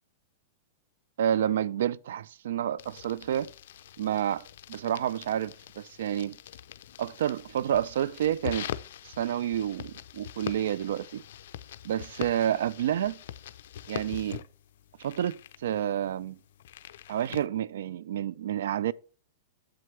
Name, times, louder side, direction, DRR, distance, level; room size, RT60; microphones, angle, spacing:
voice 1, 1.2-3.5 4.0-6.4 7.0-8.7 9.0-11.2 11.8-13.2 13.9-14.4 15.0-16.4 17.1-18.9, right 10 dB, 75° right, 0.3 m, -29 dB
sound 1, 2.8-17.5, left 11 dB, 70° left, 0.5 m, -43 dB
7.8 x 7.6 x 3.1 m
supercardioid pair, 150°, 0 cm